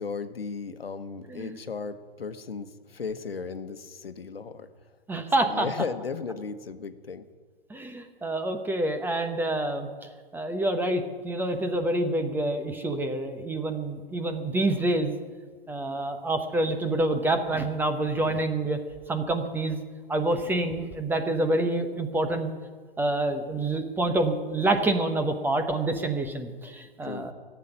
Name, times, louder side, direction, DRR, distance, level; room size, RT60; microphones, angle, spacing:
voice 1, 0.0-4.7 5.4-7.2 27.0-27.3, left 5 dB, 90° left, 10 dB, 1.2 m, -35 dB
voice 2, 5.1-5.7 7.7-15.1 15.7-18.8 19.1-19.8 20.1-22.5 23.0-27.3, right 2 dB, 5° right, 7 dB, 1.0 m, -27 dB
15.5 x 8.3 x 10.0 m, 1.5 s
hypercardioid pair, 130°, 29 cm